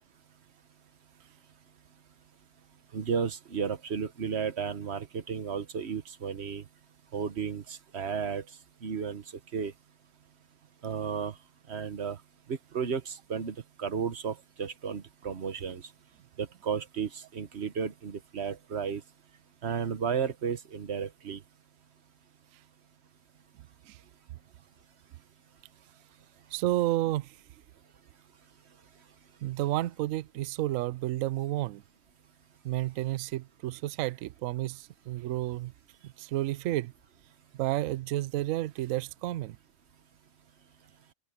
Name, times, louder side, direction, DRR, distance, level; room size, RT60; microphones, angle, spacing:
voice 1, 2.9-6.6 7.1-8.4 8.8-9.2 9.5-9.7 10.8-11.3 11.7-12.2 12.5-15.8 16.4-19.0 19.6-21.4, right 6 dB, 40° right, 1.2 m, -33 dB
voice 2, 26.5-27.3 29.4-31.8 32.6-35.7 36.0-36.9 37.5-39.6, right 15 dB, 90° right, 0.7 m, -31 dB
omnidirectional pair, 2.0 m